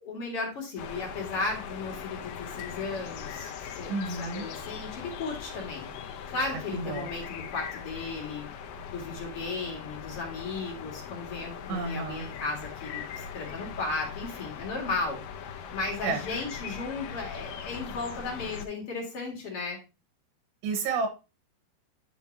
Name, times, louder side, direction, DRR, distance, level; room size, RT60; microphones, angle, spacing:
voice 1, 0.0-3.5 3.8-5.9 6.3-8.5 8.9-15.2 15.7-19.8, left 3 dB, 40° left, 0 dB, 2.5 m, -35 dB
sound 1, 0.8-18.7, left 7 dB, 70° left, 2.2 m, -40 dB
voice 2, 3.9-4.5 6.5-7.1 11.7-12.3 16.0-16.2 20.6-21.1, right 4 dB, 85° right, 4 dB, 3.6 m, -31 dB
10.5 x 5.7 x 2.8 m, 0.28 s
omnidirectional pair, 4.9 m